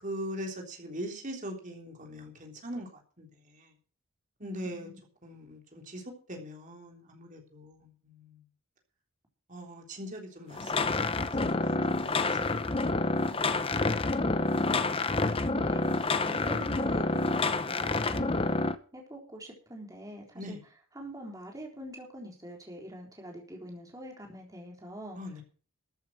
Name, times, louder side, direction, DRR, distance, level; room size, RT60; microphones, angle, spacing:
voice 1, 0.0-3.7 4.4-4.9 5.2-8.4 9.5-13.3 20.3-20.6 25.2-25.4, equal, 35° right, 3.5 m, -42 dB
voice 2, 4.4-5.0 15.5-18.6 18.9-20.6 21.0-25.2, equal, 15° right, 3.7 m, -44 dB
sound 1, 10.5-18.7, left 3 dB, 25° left, 0.8 m, -28 dB
14.0 x 8.7 x 6.2 m
head